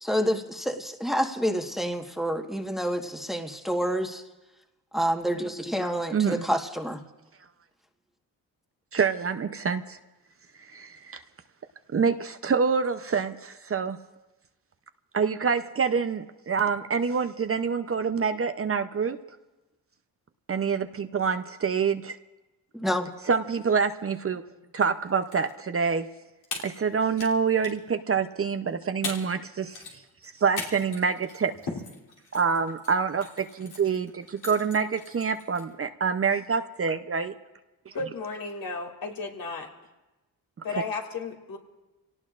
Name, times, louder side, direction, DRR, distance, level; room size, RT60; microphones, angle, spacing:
voice 1, 0.0-4.2 4.9-7.0 22.7-23.1, equal, ahead, 3 dB, 1.4 m, -28 dB
voice 2, 6.1-6.4 8.9-10.0 10.7-11.2 11.9-14.0 15.1-19.2 20.5-22.2 23.3-24.4 24.7-26.1 26.6-31.5 32.3-37.3, right 6 dB, 35° right, 8 dB, 0.7 m, -26 dB
sound 1, 25.1-25.5 25.8-25.9 26.4-27.3 27.6-27.9 28.7-28.8 29.0-29.4 29.6-35.7, left 4 dB, 80° left, 3.2 m, -39 dB
voice 3, 37.9-39.7 40.6-41.6, left 4 dB, 60° left, 1 dB, 2.6 m, -34 dB
26.5 x 18.0 x 2.5 m, 1.1 s
cardioid pair, 75°, 39 cm